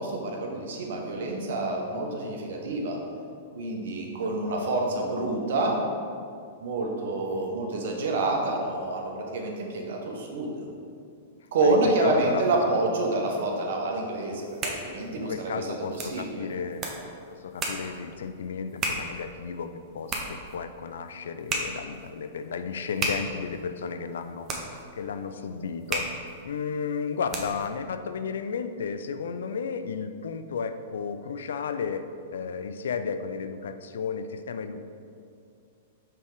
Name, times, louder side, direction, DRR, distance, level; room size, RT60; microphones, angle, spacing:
voice 1, 0.0-3.0 3.5-5.8 6.6-10.6 11.5-16.5, right 2 dB, 70° right, 0 dB, 1.1 m, -28 dB
voice 2, 11.6-12.4 15.2-16.9 17.3-24.7 24.9-26.1 26.4-34.8, left 6 dB, 80° left, 10 dB, 0.3 m, -33 dB
sound 1, 14.3-27.8, right 2 dB, 25° right, 0.9 m, -36 dB
5.6 x 3.5 x 4.8 m, 2.4 s
hypercardioid pair, 120°, 0 cm